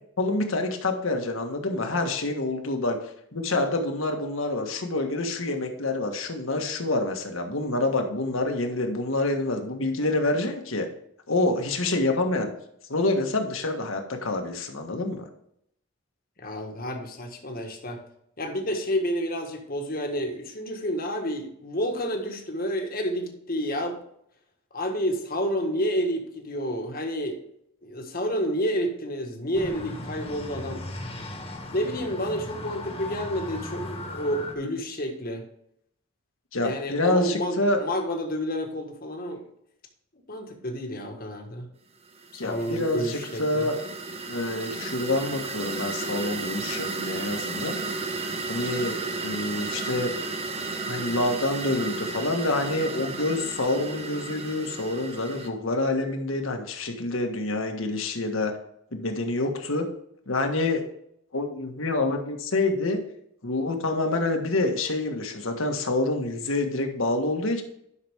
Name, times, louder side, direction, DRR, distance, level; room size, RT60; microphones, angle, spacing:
voice 1, 0.2-10.9 11.3-12.5 12.9-15.3 36.5-37.8 42.4-43.8 44.3-47.8 48.5-50.1 50.9-58.5 58.9-59.9 60.3-60.8 61.3-63.0 63.4-67.6, left 2 dB, 70° left, 4 dB, 1.5 m, -27 dB
voice 2, 16.4-18.0 18.4-24.0 24.7-27.4 27.8-30.8 31.7-35.4 36.6-39.4 40.3-41.7 42.3-43.7, equal, 45° left, 3 dB, 1.5 m, -30 dB
sound 1, 29.5-34.5, left 2 dB, 30° left, 1.5 m, -37 dB
sound 2, 42.1-55.5, right 3 dB, 30° right, 0.8 m, -33 dB
11.0 x 5.9 x 3.6 m, 0.73 s
head